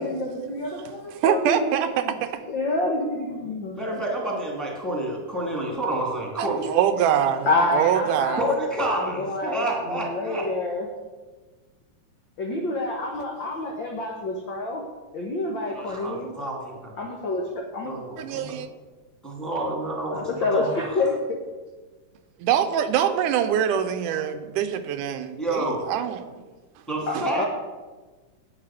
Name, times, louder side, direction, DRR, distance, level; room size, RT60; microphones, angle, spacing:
voice 1, 0.0-1.7 2.0-2.1 2.5-3.7 7.4-8.5 8.8-10.9 12.4-14.8 15.1-16.3 17.0-17.9 20.1-21.2 27.1-27.4, left 2 dB, 60° left, 0 dB, 1.2 m, -27 dB
voice 2, 1.1-2.4 6.4-8.4 18.2-18.7 22.4-26.3 27.1-27.3, right 9 dB, 85° right, 9 dB, 2.2 m, -24 dB
voice 3, 3.8-6.6 8.4-10.4 15.7-16.9 17.8-18.5 19.2-20.9 25.4-25.8 26.9-27.5, right 1 dB, ahead, -1 dB, 2.0 m, -29 dB
10.0 x 8.5 x 5.9 m, 1.3 s
omnidirectional pair, 3.7 m